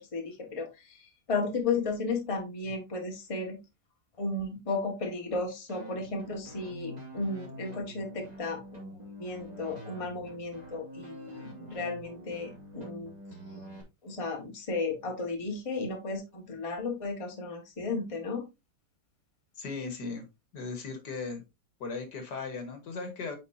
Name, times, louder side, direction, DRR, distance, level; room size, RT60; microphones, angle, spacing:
voice 1, 0.0-3.6 4.2-13.1 14.0-18.5, left 3 dB, 20° left, 1 dB, 1.3 m, -34 dB
sound 1, 5.7-13.8, equal, 25° right, 1.9 m, -46 dB
voice 2, 19.6-20.2 20.5-21.4 21.8-23.4, left 4 dB, 65° left, 6 dB, 1.9 m, -37 dB
8.6 x 4.5 x 2.6 m, 0.23 s
omnidirectional pair, 2.0 m